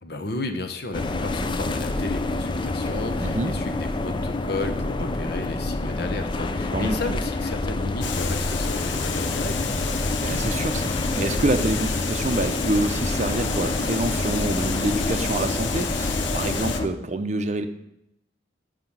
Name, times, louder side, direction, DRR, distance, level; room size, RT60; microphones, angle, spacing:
voice 1, 0.0-9.8, left 2 dB, 60° left, 7 dB, 0.9 m, -33 dB
sound 1, 0.9-16.9, left 2 dB, 25° left, 0.4 m, -27 dB
voice 2, 3.2-3.6 6.7-7.0 10.2-17.7, right 2 dB, 40° right, 9 dB, 0.6 m, -27 dB
Water, 8.0-16.8, left 7 dB, 85° left, 0.8 m, -32 dB
7.8 x 5.0 x 7.1 m, 0.79 s
head